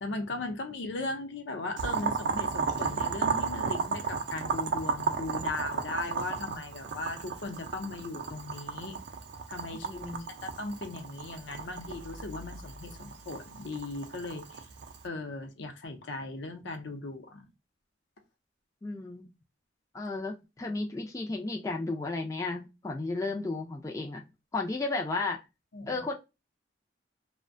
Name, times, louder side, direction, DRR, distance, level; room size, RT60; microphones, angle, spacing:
voice 1, 0.0-9.0 9.5-10.0 10.4-14.6 15.0-17.4 25.7-26.0, left 2 dB, 75° left, 0.6 m, -38 dB
Boiling, 1.8-15.0, right 5 dB, 65° right, 0.4 m, -34 dB
voice 2, 9.9-10.3 18.8-19.3 19.9-24.2 24.5-25.4 25.9-26.2, left 3 dB, 15° left, 0.3 m, -33 dB
2.5 x 2.1 x 2.4 m
head